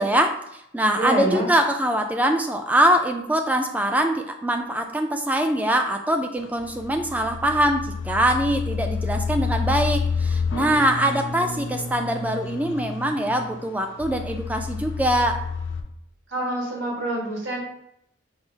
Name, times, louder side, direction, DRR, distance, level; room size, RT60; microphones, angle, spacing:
voice 1, 0.0-15.4, right 1 dB, 10° right, 4 dB, 0.3 m, -23 dB
voice 2, 0.9-1.5 16.3-17.6, right 1 dB, 85° right, -2 dB, 1.4 m, -26 dB
sound 1, 6.4-15.8, left 5 dB, 85° left, 0.5 m, -29 dB
5.4 x 2.0 x 4.8 m, 0.76 s
head